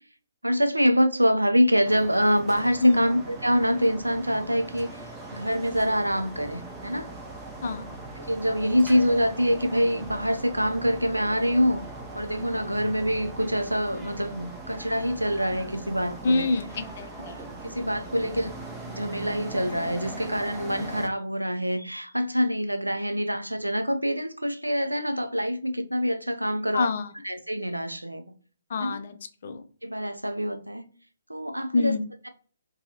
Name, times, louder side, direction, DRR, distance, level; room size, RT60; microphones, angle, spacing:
voice 1, 0.4-7.1 8.2-11.8 12.1-16.5 17.6-18.5 18.8-26.9 27.2-28.2 28.8-29.0 29.8-30.9 31.3-31.9, equal, 90° right, 0.4 m, -25 dB
sound 1, 1.8-21.1, right 2 dB, 10° right, 0.6 m, -40 dB
voice 2, 7.6-8.0 16.2-17.4 26.7-27.1 28.7-29.2 29.4-29.6 31.7-32.1, left 3 dB, 50° left, 0.4 m, -26 dB
2.7 x 2.3 x 2.7 m
figure-of-eight pair, 130°, 0 cm